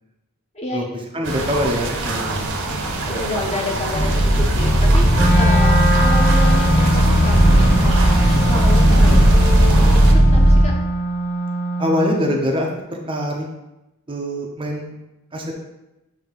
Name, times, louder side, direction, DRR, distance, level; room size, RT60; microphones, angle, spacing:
voice 1, 0.5-0.9 3.1-10.7, left 1 dB, 30° left, 0 dB, 1.0 m, -29 dB
voice 2, 1.1-2.5 11.8-13.4 14.1-14.9 15.3-15.5, equal, 25° right, 0 dB, 0.6 m, -23 dB
sound 1, 1.2-10.1, right 2 dB, 55° right, 0.9 m, -26 dB
sound 2, 3.9-10.6, equal, 75° left, 1.8 m, -15 dB
Wind instrument woodwind instrument, 5.1-12.3, right 2 dB, 5° left, 0.9 m, -23 dB
7.1 x 2.8 x 5.4 m, 0.95 s
head